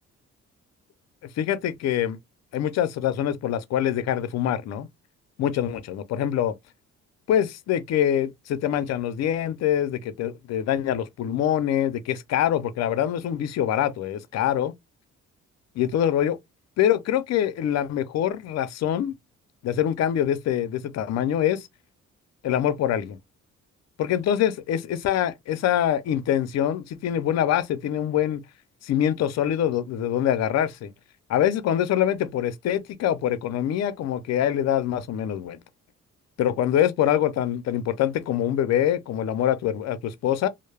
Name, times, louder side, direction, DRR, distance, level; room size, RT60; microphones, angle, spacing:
voice 1, 1.4-2.2 2.5-4.9 5.4-6.5 7.3-14.7 15.8-16.4 16.8-19.1 19.6-21.7 22.4-23.2 24.0-28.4 28.8-30.9 31.3-35.6 36.4-40.5, left 10 dB, 60° left, 0.5 m, -24 dB
2.2 x 2.0 x 3.1 m
cardioid pair, 90°, 30 cm